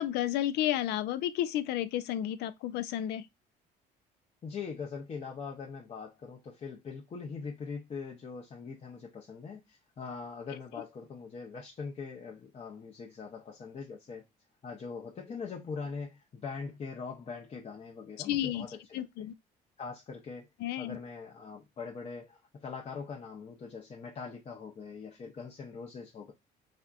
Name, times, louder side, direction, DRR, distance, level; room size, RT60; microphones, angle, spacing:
voice 1, 0.0-3.3 18.2-19.3 20.6-21.0, left 12 dB, 80° left, 0.4 m, -32 dB
voice 2, 4.4-14.3 14.6-19.3 19.8-20.5 20.8-26.3, left 5 dB, 35° left, 0.7 m, -42 dB
3.5 x 2.6 x 2.4 m
cardioid pair, 110°, 17 cm